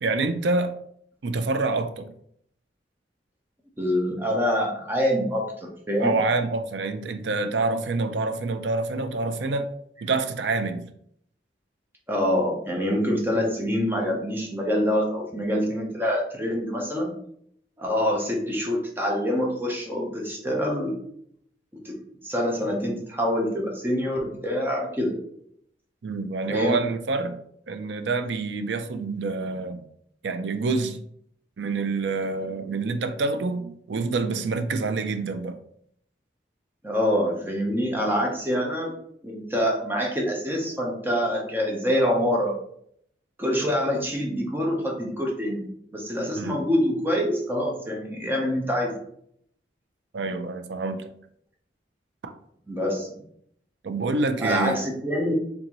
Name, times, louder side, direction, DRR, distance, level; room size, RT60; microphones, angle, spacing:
voice 1, 0.0-0.7 1.2-2.1 6.0-9.7 10.0-10.9 26.0-27.4 27.7-29.8 30.2-31.0 31.6-35.6 46.3-46.6 50.1-51.1 52.2-52.3 53.8-54.8, right 3 dB, 80° right, 9 dB, 0.5 m, -27 dB
voice 2, 3.8-5.4 5.9-6.2 12.1-17.1 17.8-21.0 21.8-21.9 22.2-25.2 26.5-26.8 36.8-38.9 39.2-42.6 43.4-49.0 52.7-53.1 54.4-55.3, equal, 10° right, -1 dB, 0.7 m, -25 dB
3.9 x 3.5 x 3.0 m, 0.68 s
head